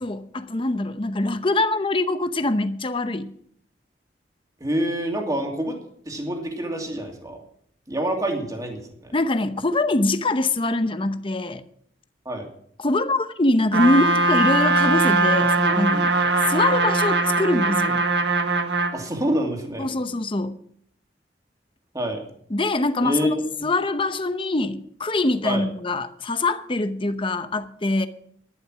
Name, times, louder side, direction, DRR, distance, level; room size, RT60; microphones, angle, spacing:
voice 1, 0.0-3.3 9.1-11.6 12.8-16.1 16.5-18.1 19.8-20.6 22.5-23.4 23.6-28.1, left 2 dB, 30° left, 0.8 m, -23 dB
voice 2, 4.6-5.8 6.0-7.4 7.9-9.1 12.2-12.5 18.9-19.9 21.9-22.2 23.0-23.4 25.4-25.6, right 1 dB, 20° right, 2.6 m, -26 dB
Trumpet, 13.7-19.0, right 3 dB, 75° right, 1.5 m, -21 dB
11.5 x 11.5 x 6.1 m
head